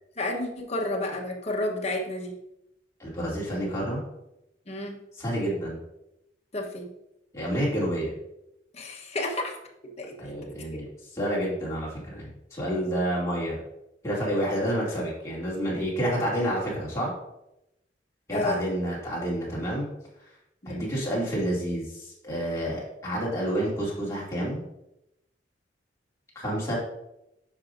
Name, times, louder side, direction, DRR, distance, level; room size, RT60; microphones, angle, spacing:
voice 1, 0.2-2.4 4.7-5.0 6.5-6.9 8.7-9.6 10.0-10.3 18.3-18.7 20.6-20.9, left 2 dB, 35° left, 1 dB, 1.1 m, -31 dB
voice 2, 3.0-4.0 5.2-5.8 7.3-8.1 10.2-10.9 11.1-13.6 14.0-17.1 18.3-19.9 20.7-24.6 26.4-26.8, equal, 15° left, -6 dB, 2.4 m, -29 dB
9.4 x 5.9 x 2.6 m, 0.86 s
head